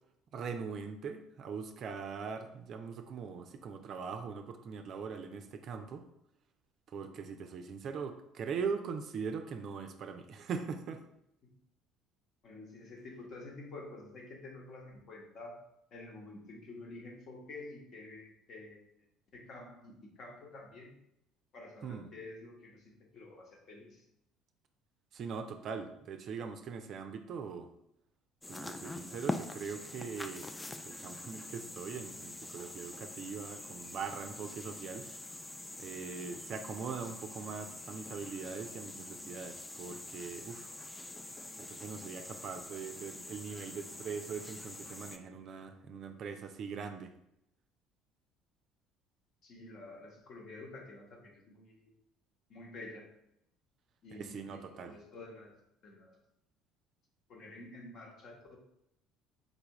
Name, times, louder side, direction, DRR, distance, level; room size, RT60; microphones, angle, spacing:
voice 1, 0.3-6.1 6.9-11.0 21.8-22.1 25.1-27.7 28.5-30.5 30.8-35.1 35.8-40.7 41.6-47.1 54.1-54.9, right 5 dB, 50° right, 7 dB, 0.4 m, -41 dB
voice 2, 12.4-15.6 15.9-18.9 19.3-20.9 21.5-24.0 49.4-51.9 52.5-53.1 54.0-56.2 57.3-58.6, left 2 dB, 50° left, 0 dB, 1.0 m, -49 dB
sound 1, 28.4-45.2, left 2 dB, 15° left, 0.4 m, -45 dB
4.0 x 3.5 x 3.0 m, 0.79 s
figure-of-eight pair, 55°, 0 cm